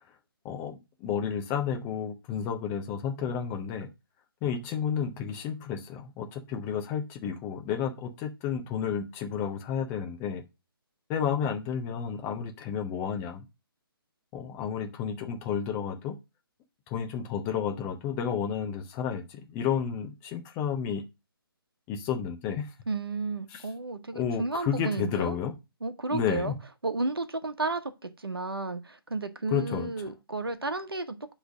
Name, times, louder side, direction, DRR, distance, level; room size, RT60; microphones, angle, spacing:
voice 1, 0.4-3.9 4.4-10.4 11.1-13.5 14.3-16.2 16.9-21.0 21.9-22.7 23.5-23.6 24.1-25.5 26.1-26.6 29.5-29.9, left 7 dB, 15° left, 0.6 m, -31 dB
voice 2, 22.9-25.4 25.8-26.5 26.8-31.2, right 3 dB, 70° right, 1.1 m, -32 dB
7.9 x 3.3 x 6.1 m
figure-of-eight pair, 140°, 13 cm